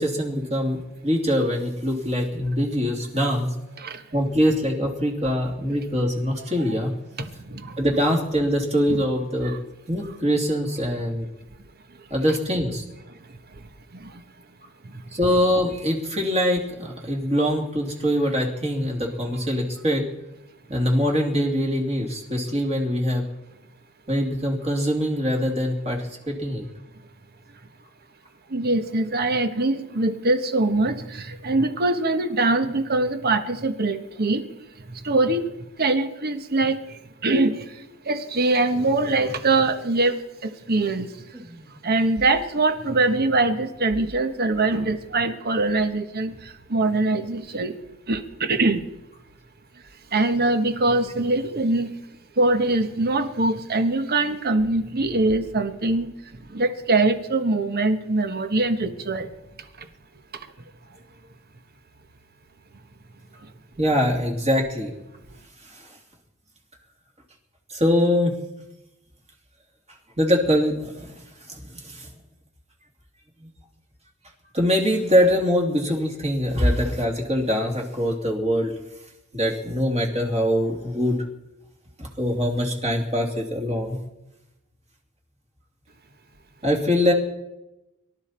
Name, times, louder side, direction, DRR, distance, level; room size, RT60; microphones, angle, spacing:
voice 1, 0.0-3.5 4.1-6.9 7.8-9.5 9.9-11.3 12.1-12.8 15.1-20.1 20.7-23.2 24.1-26.6 41.3-41.9 44.0-44.1 63.8-64.9 65.6-65.9 67.7-68.4 70.2-71.1 71.5-72.1 73.4-73.5 74.5-78.7 79.3-81.2 82.0-84.0 86.6-87.1, equal, 30° right, 0 dB, 2.8 m, -23 dB
voice 2, 7.2-7.8 8.9-9.0 9.4-9.6 14.0-14.1 28.5-34.4 34.9-35.4 35.8-37.6 38.0-41.1 41.8-47.8 48.1-48.8 50.1-51.9 52.4-56.1 56.5-59.3, right 2 dB, 45° right, 9 dB, 1.2 m, -23 dB
23.5 x 12.5 x 4.4 m, 0.96 s
head